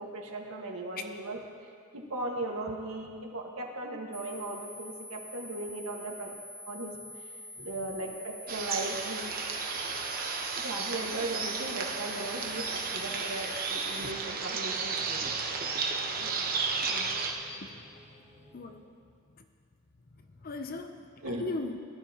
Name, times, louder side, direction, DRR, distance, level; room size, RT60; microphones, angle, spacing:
voice 1, 0.0-1.4 1.9-6.3 6.7-6.9 7.6-9.3 10.6-15.3 21.2-21.4, right 2 dB, 85° right, 0 dB, 1.7 m, -37 dB
sound 1, 4.1-14.1, left 1 dB, 5° left, 1.1 m, -46 dB
voice 2, 7.6-7.9 16.2-16.5 16.8-19.5 20.1-21.8, left 3 dB, 45° left, 7 dB, 0.6 m, -42 dB
sound 2, 8.5-17.3, right 4 dB, 45° right, 1.0 m, -33 dB
sound 3, 11.8-18.8, equal, 15° right, 2.6 m, -54 dB
18.5 x 12.0 x 2.9 m, 2.2 s
head